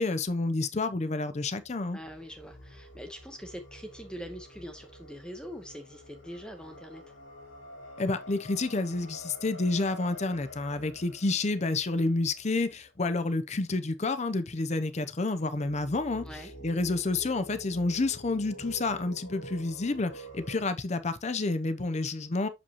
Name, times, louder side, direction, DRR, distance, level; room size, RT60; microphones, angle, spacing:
voice 1, 0.0-2.0 8.0-16.2 16.6-22.5, left 3 dB, 35° left, 0.6 m, -29 dB
sound 1, 1.5-13.4 15.3-20.7, equal, 85° left, 2.3 m, -48 dB
voice 2, 1.9-7.0 16.2-16.5, equal, 5° left, 0.8 m, -43 dB
7.0 x 5.1 x 2.9 m
head